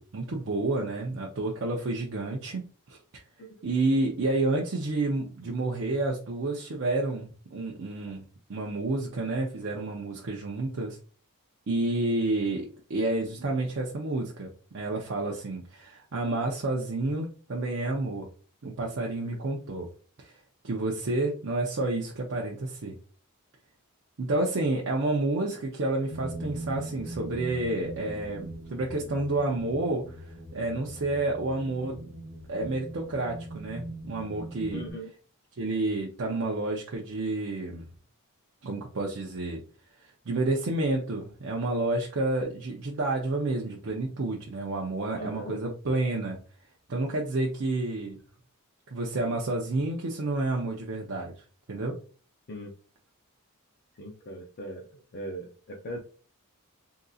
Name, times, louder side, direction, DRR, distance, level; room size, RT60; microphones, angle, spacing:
voice 1, 0.0-3.0 3.6-8.2 8.5-11.0 11.7-18.3 18.6-19.9 20.2-20.3 20.6-23.0 24.2-30.3 30.5-32.1 32.5-34.8 35.6-37.8 38.6-39.6 40.0-46.4 46.9-48.2 48.9-51.3 51.7-52.0, right 2 dB, 60° right, -1 dB, 0.6 m, -30 dB
sound 1, 26.1-34.9, right 1 dB, 20° right, 1.1 m, -41 dB
voice 2, 34.7-35.1 45.1-45.6 52.5-52.7 54.0-56.0, equal, 50° left, 1 dB, 0.5 m, -39 dB
3.7 x 2.6 x 2.3 m, 0.38 s
head